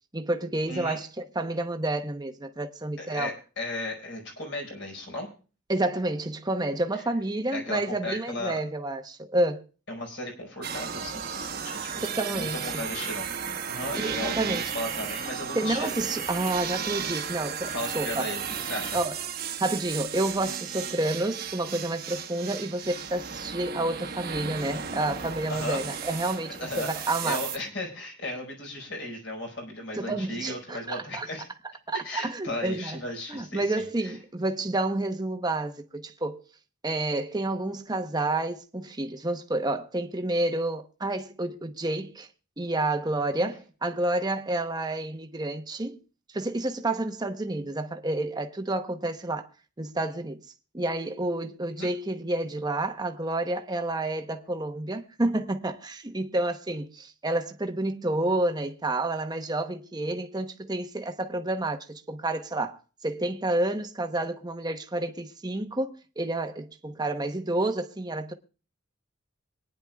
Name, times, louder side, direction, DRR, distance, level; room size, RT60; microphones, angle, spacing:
voice 1, 0.1-3.3 5.7-9.6 12.0-12.8 13.9-14.7 15.5-18.3 18.9-19.2 19.6-27.4 29.9-31.3 31.9-33.0 33.3-36.4 36.8-42.3 42.6-46.0 46.3-49.5 49.8-50.4 50.7-68.3, right 2 dB, 20° right, 0.9 m, -29 dB
voice 2, 0.7-1.0 3.0-5.3 6.9-7.0 7.5-8.6 9.9-12.0 12.3-13.3 13.7-15.9 17.6-19.0 25.5-31.4 32.0-34.2 43.4-43.5 51.7-51.9, left 1 dB, 65° left, 5.0 m, -36 dB
sound 1, 10.6-27.6, right 7 dB, 50° right, 1.1 m, -34 dB
25.5 x 10.0 x 2.3 m
head